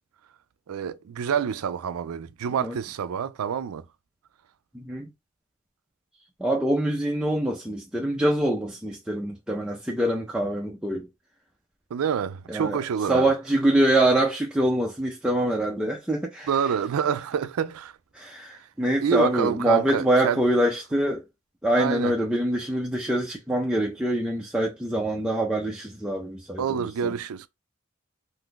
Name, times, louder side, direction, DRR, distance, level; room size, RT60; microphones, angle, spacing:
voice 1, 0.7-3.9 11.9-13.3 16.5-17.9 18.5-18.6 19.0-20.4 21.7-22.2 26.6-27.5, right 7 dB, 75° right, 0.4 m, -27 dB
voice 2, 4.7-5.1 6.4-11.1 12.5-12.8 13.1-16.5 18.1-21.2 21.6-27.1, right 1 dB, 5° right, 0.4 m, -25 dB
2.6 x 2.4 x 3.6 m
head